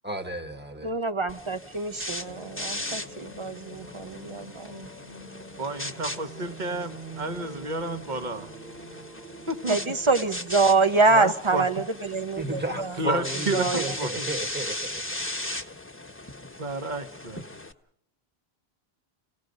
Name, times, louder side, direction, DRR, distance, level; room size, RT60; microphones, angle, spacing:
voice 1, 0.0-0.9 12.4-15.0, right 1 dB, 10° right, 6 dB, 1.4 m, -33 dB
voice 2, 0.8-4.9 9.7-12.9 13.5-13.9, right 3 dB, 30° right, 10 dB, 0.8 m, -25 dB
sound 1, 1.3-17.7, left 1 dB, 10° left, 1.2 m, -38 dB
sound 2, 2.2-10.2, right 3 dB, 70° right, 3.6 m, -45 dB
voice 3, 5.6-8.5 9.5-9.8 11.1-11.8 13.0-14.3 16.6-17.4, right 2 dB, 45° right, 7 dB, 1.3 m, -31 dB
28.5 x 17.5 x 5.3 m, 0.75 s
omnidirectional pair, 1.0 m